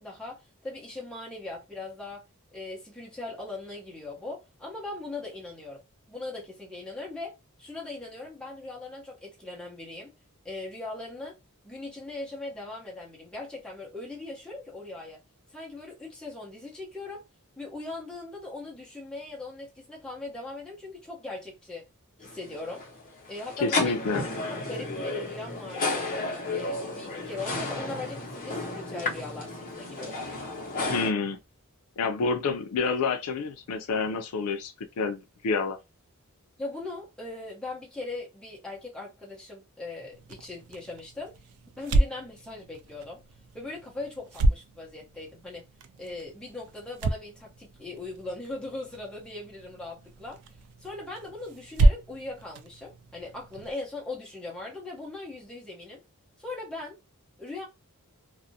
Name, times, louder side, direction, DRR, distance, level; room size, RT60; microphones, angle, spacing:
voice 1, 0.0-2.2 2.5-5.8 6.1-10.1 10.4-11.4 11.6-15.2 15.5-17.2 17.6-21.8 22.2-22.8 23.3-26.1 26.5-30.2 36.6-41.4 41.8-43.2 43.5-45.7 46.0-50.4 50.8-56.0 56.4-57.0 57.4-57.7, left 2 dB, 5° left, 0.8 m, -39 dB
sound 1, 22.2-31.1, left 2 dB, 35° left, 0.8 m, -33 dB
voice 2, 23.6-24.2 30.9-31.4 32.0-35.8, left 4 dB, 75° left, 0.4 m, -28 dB
sound 2, 40.1-53.7, right 1 dB, 80° right, 0.4 m, -30 dB
2.4 x 2.0 x 2.7 m
head